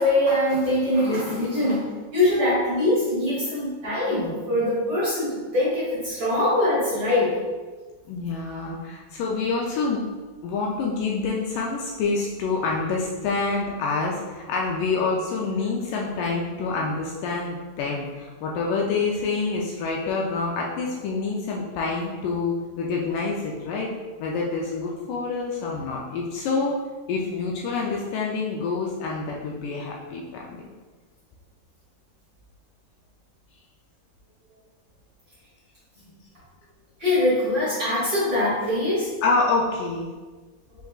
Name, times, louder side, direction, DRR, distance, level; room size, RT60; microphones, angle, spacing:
voice 1, 0.0-1.9 2.1-7.3 37.0-39.1, left 1 dB, 50° right, -10 dB, 1.7 m, -23 dB
voice 2, 8.1-10.0 10.4-23.9 24.2-26.8 27.1-30.2 30.5-30.6 39.2-40.1, left 4 dB, 80° left, -2 dB, 2.0 m, -27 dB
6.1 x 3.3 x 2.3 m, 1.3 s
omnidirectional pair, 4.0 m